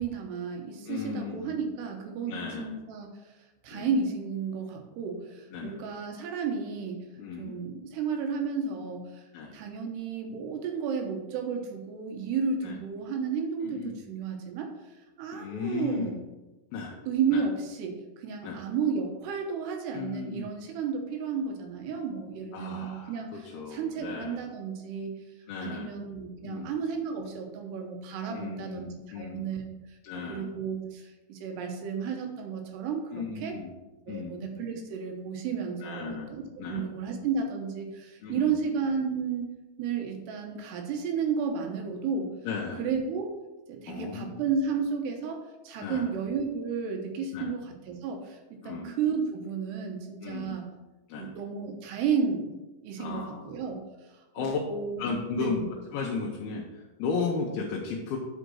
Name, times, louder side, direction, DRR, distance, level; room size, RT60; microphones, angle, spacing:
voice 1, 0.0-3.2 3.6-7.1 7.4-9.2 9.5-14.7 15.2-16.2 17.1-25.1 25.6-29.7 30.1-33.6 34.1-39.4 39.8-42.3 42.8-43.3 43.7-48.4 48.6-50.7 51.2-52.5 52.8-55.1 55.4-55.6, right 5 dB, 80° right, 3 dB, 3.1 m, -32 dB
voice 2, 0.9-1.6 2.3-2.7 3.7-3.9 5.5-5.8 7.2-7.6 9.3-9.6 12.6-12.8 13.6-14.0 15.3-16.1 16.7-17.0 17.3-17.5 18.4-18.6 19.9-20.5 22.5-24.4 25.5-25.9 26.4-26.7 28.3-29.5 30.0-30.5 33.1-33.7 34.1-34.4 35.8-36.3 36.6-36.8 38.2-38.6 42.4-42.8 43.9-44.4 45.8-46.1 47.3-47.5 48.6-48.9 50.2-50.6 51.1-51.3 53.0-53.4 54.3-54.6 55.0-55.6 55.9-58.2, left 4 dB, 75° left, -1 dB, 2.6 m, -35 dB
8.2 x 5.0 x 6.2 m, 1.1 s
omnidirectional pair, 4.9 m